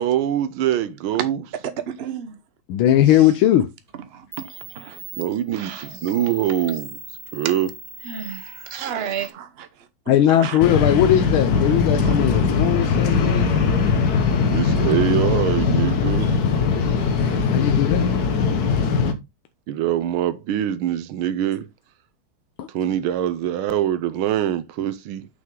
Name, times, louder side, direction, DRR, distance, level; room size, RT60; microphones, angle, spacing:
voice 1, 0.0-1.4 5.2-7.0 7.3-7.7 14.5-16.3 19.7-21.7 22.7-25.3, right 11 dB, 85° right, 1.6 m, -23 dB
voice 2, 1.6-2.4 4.1-4.5 4.7-5.0 5.5-5.9 8.0-9.7 10.3-10.6 12.0-12.1, right 8 dB, 60° right, 0.6 m, -32 dB
voice 3, 2.7-3.7 10.1-13.5 17.5-18.1 22.6-22.7, left 11 dB, 80° left, 1.6 m, -19 dB
sound 1, 3.9-4.0 4.3-9.3, right 2 dB, 25° right, 0.9 m, -40 dB
sound 2, 10.6-19.1, left 5 dB, 55° left, 1.3 m, -20 dB
6.3 x 6.0 x 3.7 m
omnidirectional pair, 2.3 m